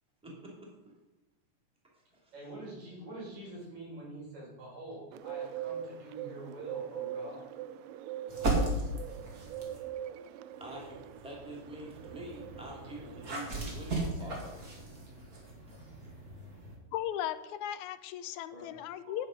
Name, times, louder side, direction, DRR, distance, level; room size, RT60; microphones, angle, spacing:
voice 1, 0.2-0.7 1.9-2.3 9.7-9.9 10.6-14.6, equal, ahead, -2 dB, 2.5 m, -46 dB
voice 2, 2.3-7.5 18.5-19.3, right 2 dB, 70° right, -5 dB, 6.4 m, -46 dB
Bird, 5.1-13.4, right 9 dB, 90° right, 1.4 m, -42 dB
sound 1, 8.3-9.9 10.5-16.8, right 2 dB, 30° right, 2.4 m, -37 dB
voice 3, 16.9-19.3, left 11 dB, 85° left, 13 dB, 2.0 m, -37 dB
10.0 x 8.6 x 5.2 m, 1.0 s
omnidirectional pair, 3.4 m